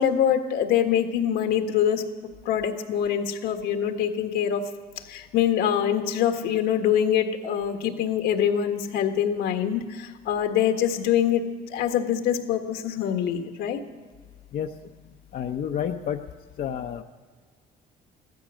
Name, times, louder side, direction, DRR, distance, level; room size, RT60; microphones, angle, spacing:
voice 1, 0.0-4.6 5.1-11.4 11.7-13.8, left 9 dB, 80° left, 5 dB, 1.6 m, -24 dB
voice 2, 14.5-14.9 15.3-16.3 16.6-17.0, left 9 dB, 55° left, 4 dB, 0.8 m, -30 dB
15.5 x 13.0 x 6.2 m, 1.5 s
cardioid pair, 110°, 17 cm